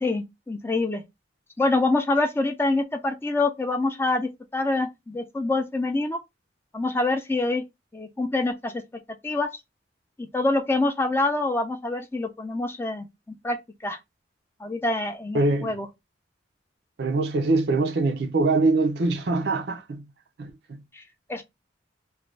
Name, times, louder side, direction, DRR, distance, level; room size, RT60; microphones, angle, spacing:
voice 1, 0.0-1.0 1.6-6.2 6.7-7.6 7.9-8.8 9.2-9.5 10.2-13.6 13.8-14.0 14.6-15.9 20.9-21.0 21.3-21.4, left 2 dB, 10° left, 0.4 m, -26 dB
voice 2, 15.3-15.7 17.0-20.1 20.4-20.8, right 3 dB, 60° right, 0.5 m, -23 dB
2.5 x 2.2 x 3.1 m
head